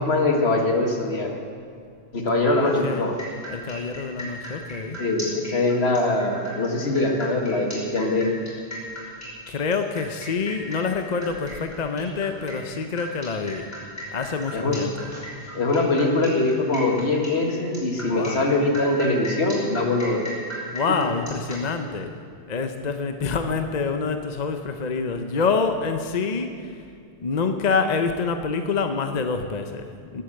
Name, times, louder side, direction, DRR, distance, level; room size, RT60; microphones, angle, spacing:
voice 1, 0.0-1.3 2.1-3.2 5.0-8.4 14.5-14.8 15.5-20.3, left 2 dB, 70° left, 2 dB, 2.0 m, -22 dB
sound 1, 2.6-21.6, equal, 15° left, 5.1 m, -37 dB
voice 2, 3.5-5.0 9.5-13.7 14.1-15.1 18.1-18.5 20.7-22.1 22.5-26.5 27.2-30.2, left 5 dB, 40° left, 7 dB, 0.8 m, -26 dB
19.5 x 8.4 x 7.8 m, 2.3 s
omnidirectional pair, 1.1 m